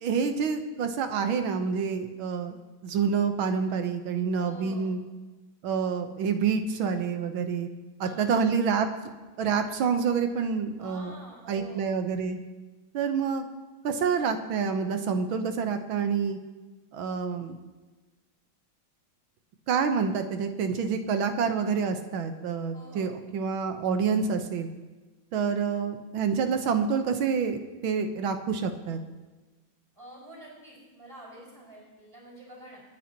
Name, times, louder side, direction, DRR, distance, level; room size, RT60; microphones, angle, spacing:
voice 1, 0.0-2.6 2.8-5.0 5.6-7.7 8.0-8.9 9.4-11.1 11.5-12.4 12.9-13.5 13.8-16.4 16.9-17.6 19.7-24.7 25.3-29.0, right 6 dB, 90° right, 7 dB, 1.8 m, -27 dB
voice 2, 4.3-5.0 8.0-8.4 10.8-12.0 22.7-23.2 29.9-32.8, right 1 dB, 15° right, -5 dB, 4.9 m, -48 dB
28.0 x 9.6 x 3.0 m, 1.2 s
omnidirectional pair, 2.2 m